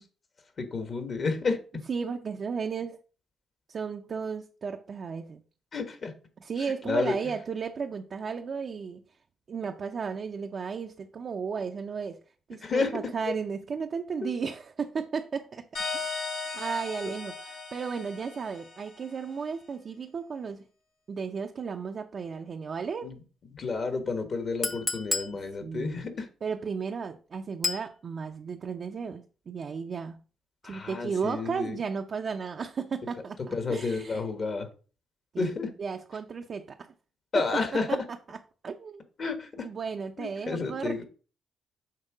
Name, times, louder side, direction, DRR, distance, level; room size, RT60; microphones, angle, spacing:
voice 1, 0.6-1.6 5.7-6.1 6.8-7.2 12.6-12.9 14.2-14.3 23.0-23.2 23.6-26.3 30.6-31.8 33.5-34.7 35.4-35.7 37.3-38.0 39.2-39.5 40.2-41.0, left 4 dB, 50° left, 1.4 m, -30 dB
voice 2, 1.9-3.0 3.7-5.4 6.4-9.0 9.5-12.2 12.5-15.7 15.9-16.1 16.5-20.6 21.1-23.1 25.6-26.0 26.4-30.2 30.6-34.2 35.3-35.5 35.8-36.9 37.3-37.4 37.9-38.0 38.3-38.4 38.6-39.0 39.6-41.0, right 5 dB, 55° right, 0.6 m, -34 dB
sound 1, 15.7-19.2, left 4 dB, 85° left, 2.4 m, -37 dB
Chink clink, 24.6-25.4 27.6-27.9, left 3 dB, 25° left, 0.8 m, -30 dB
6.6 x 3.7 x 4.9 m
cardioid pair, 75°, 0 cm